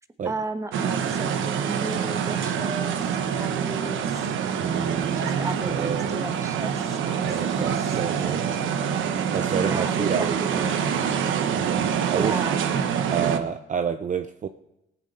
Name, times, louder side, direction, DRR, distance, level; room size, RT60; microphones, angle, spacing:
voice 1, 0.2-1.4 1.7-3.1 3.3-4.3 5.1-8.0 9.5-11.2 12.1-12.6, right 2 dB, 15° right, 8 dB, 1.2 m, -35 dB
sound 1, 0.7-13.4, right 7 dB, 80° right, 1.0 m, -26 dB
voice 2, 4.6-5.3 5.6-6.1 7.2-8.5 9.3-10.7 11.5-12.4 13.1-14.5, right 7 dB, 40° right, 9 dB, 0.6 m, -29 dB
18.0 x 9.8 x 4.2 m, 0.90 s
cardioid pair, 90°, 20 cm